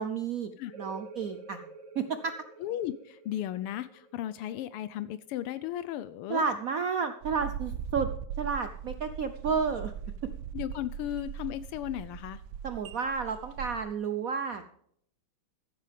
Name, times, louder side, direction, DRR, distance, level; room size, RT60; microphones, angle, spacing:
voice 1, 0.0-1.6 1.9-2.3 6.3-8.1 8.4-9.9 12.6-14.6, right 5 dB, 70° right, 9 dB, 0.8 m, -31 dB
sound 1, 0.7-6.1, right 3 dB, 40° right, 1.4 m, -50 dB
voice 2, 2.6-6.4 10.5-12.4, left 12 dB, 85° left, 14 dB, 1.6 m, -35 dB
sound 2, 7.2-13.8, right 9 dB, 85° right, 1.7 m, -39 dB
14.5 x 12.0 x 3.5 m, 0.68 s
omnidirectional pair, 2.4 m